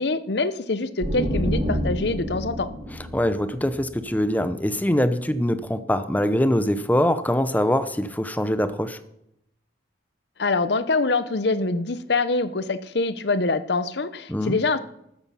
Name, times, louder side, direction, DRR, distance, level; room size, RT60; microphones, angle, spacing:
voice 1, 0.0-2.7 10.4-14.8, left 3 dB, 65° left, 14 dB, 0.8 m, -24 dB
sound 1, 1.0-4.6, equal, 45° right, 3.3 m, -29 dB
voice 2, 2.9-9.0 14.3-14.6, left 1 dB, 10° left, 12 dB, 0.6 m, -23 dB
13.5 x 9.5 x 5.6 m, 0.78 s
head